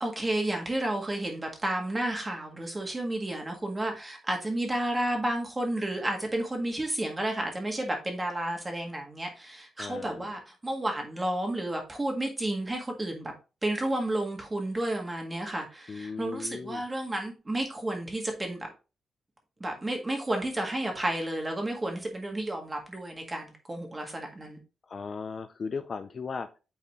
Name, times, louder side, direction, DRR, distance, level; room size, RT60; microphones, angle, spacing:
voice 1, 0.0-13.3 13.6-18.7 19.6-24.6, right 1 dB, 15° right, 1.7 m, -31 dB
voice 2, 9.8-10.3 15.9-16.8 24.9-26.6, left 5 dB, 40° left, 0.5 m, -37 dB
8.7 x 4.1 x 3.1 m
wide cardioid pair, 150°, 0 cm